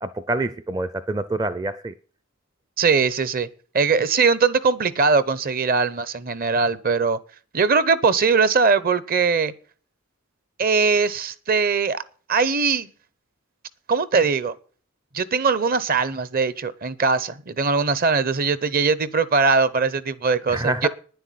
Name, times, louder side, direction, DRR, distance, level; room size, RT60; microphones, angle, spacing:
voice 1, 0.0-1.9 20.5-20.9, right 2 dB, 20° right, 0.5 m, -26 dB
voice 2, 2.8-3.5 3.7-7.2 7.5-9.5 10.6-12.0 12.3-12.9 13.9-14.5 15.1-20.9, right 5 dB, 45° right, 0.8 m, -21 dB
10.0 x 7.8 x 9.2 m
head